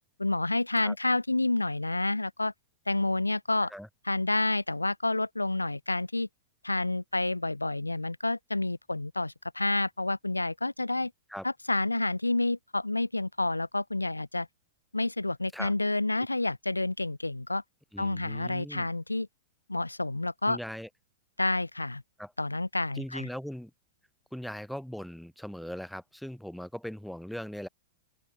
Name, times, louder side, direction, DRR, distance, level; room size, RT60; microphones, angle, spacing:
voice 1, 0.2-2.5 2.9-3.7 4.0-6.3 6.6-11.1 11.4-14.5 14.9-17.6 18.0-19.3 19.7-20.6 21.4-22.0 22.4-23.3, left 2 dB, 85° left, 5.2 m, -29 dB
voice 2, 17.9-18.9 20.4-20.9 22.2-22.3 22.9-23.7 24.3-27.7, equal, ahead, 5.9 m, -39 dB
open air
figure-of-eight pair, 100°, 0 cm